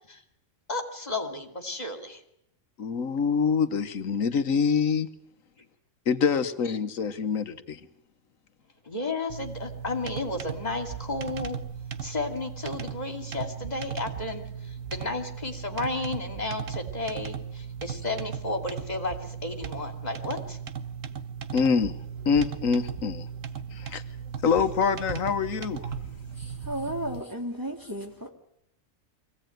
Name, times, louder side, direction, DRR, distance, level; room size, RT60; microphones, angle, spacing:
voice 1, 0.7-2.2 8.8-11.6 12.0-20.6, left 2 dB, 30° left, 4 dB, 2.6 m, -33 dB
voice 2, 2.8-5.1 6.1-7.8 21.5-22.0 22.2-23.3 23.7-24.0 24.4-25.9, left 6 dB, 85° left, 9 dB, 1.5 m, -25 dB
sound 1, 9.3-27.2, right 7 dB, 75° right, 1.5 m, -37 dB
voice 3, 26.3-28.3, equal, 15° right, 1 dB, 2.8 m, -34 dB
24.5 x 17.0 x 9.2 m, 0.78 s
omnidirectional pair, 1.4 m